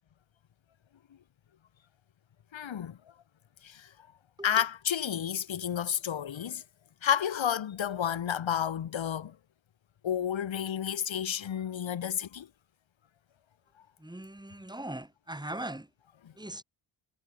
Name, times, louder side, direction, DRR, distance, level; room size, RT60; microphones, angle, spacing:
voice 1, 2.5-3.0 3.6-3.9 4.4-6.6 7.0-9.4 10.0-12.5 16.2-16.3, left 9 dB, 70° left, 7.0 m, -31 dB
voice 2, 14.0-15.9 16.4-16.6, right 1 dB, 10° right, 7.9 m, -40 dB
cardioid pair, 80°, 47 cm